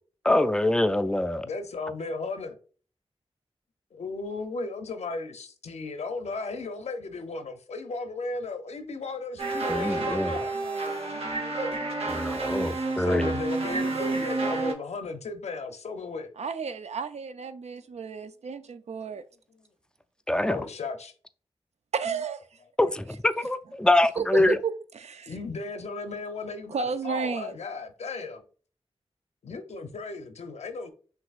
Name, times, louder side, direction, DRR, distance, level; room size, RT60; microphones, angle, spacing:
voice 1, 0.2-1.5 9.7-10.4 12.1-13.3 20.3-20.6 22.8-24.6, left 1 dB, 5° left, 0.3 m, -24 dB
voice 2, 1.4-2.6 3.9-10.5 11.6-11.8 13.0-16.3 19.1-19.2 20.5-21.1 24.4-24.6 25.3-26.7 27.0-28.4 29.4-30.9, left 3 dB, 85° left, 0.6 m, -35 dB
sound 1, 9.4-14.7, right 3 dB, 65° right, 0.9 m, -30 dB
voice 3, 10.5-11.2 16.4-19.2 21.9-22.4 24.2-25.3 26.7-27.6, right 5 dB, 80° right, 0.4 m, -33 dB
6.0 x 2.6 x 2.4 m
wide cardioid pair, 85°, 11 cm